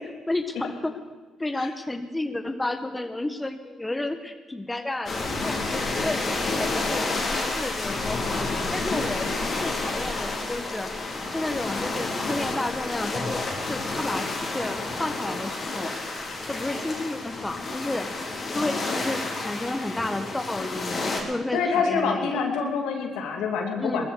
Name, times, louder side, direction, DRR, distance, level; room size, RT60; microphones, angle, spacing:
voice 1, 0.3-1.0 1.4-6.2 6.5-9.3 9.6-13.4 13.7-15.9 16.5-22.6 23.8-24.1, left 2 dB, 15° left, 7 dB, 1.3 m, -32 dB
sound 1, 5.1-21.2, left 3 dB, 50° left, 3.9 m, -30 dB
voice 2, 21.5-24.1, left 5 dB, 75° left, 3 dB, 2.2 m, -26 dB
19.5 x 14.0 x 4.7 m, 1.3 s
hypercardioid pair, 55°, 0 cm